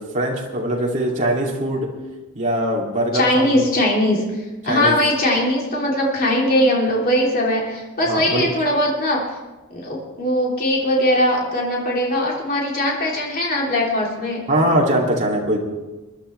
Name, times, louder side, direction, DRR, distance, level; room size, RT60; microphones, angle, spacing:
voice 1, 0.0-1.9 2.3-3.7 4.7-4.9 8.1-8.5 14.5-15.6, right 1 dB, 35° right, -2 dB, 2.6 m, -21 dB
voice 2, 3.1-9.2 9.7-14.4, left 1 dB, 45° left, -3 dB, 3.1 m, -20 dB
21.5 x 11.5 x 3.3 m, 1.1 s
head